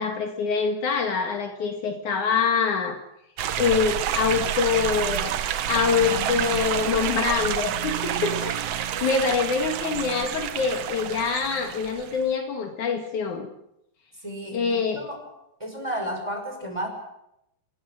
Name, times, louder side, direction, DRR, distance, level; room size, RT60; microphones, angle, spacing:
voice 1, 0.0-3.0 3.6-5.3 5.7-8.5 9.0-13.5 14.5-15.1, left 5 dB, 70° left, 4 dB, 3.4 m, -25 dB
sound 1, 3.4-12.2, right 10 dB, 65° right, 1.8 m, -28 dB
voice 2, 5.8-6.6 8.9-9.2 14.2-15.2 15.6-16.9, equal, 10° right, 2 dB, 5.9 m, -33 dB
28.5 x 20.5 x 6.5 m, 0.82 s
omnidirectional pair, 3.7 m